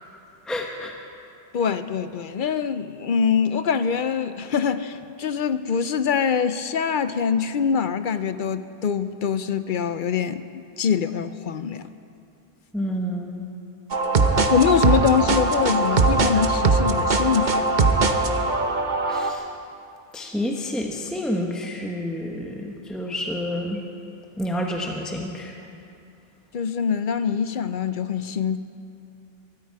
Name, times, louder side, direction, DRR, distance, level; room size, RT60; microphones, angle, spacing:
voice 1, 0.5-0.9 12.7-13.5 19.0-19.4 20.1-23.8 24.4-25.5, left 1 dB, ahead, 1 dB, 1.1 m, -29 dB
voice 2, 1.5-11.9 14.5-17.7 26.5-28.6, left 7 dB, 60° left, 12 dB, 0.7 m, -24 dB
sound 1, 13.9-19.3, right 3 dB, 50° right, 1.0 m, -21 dB
23.5 x 12.5 x 4.7 m, 2.6 s
omnidirectional pair, 1.0 m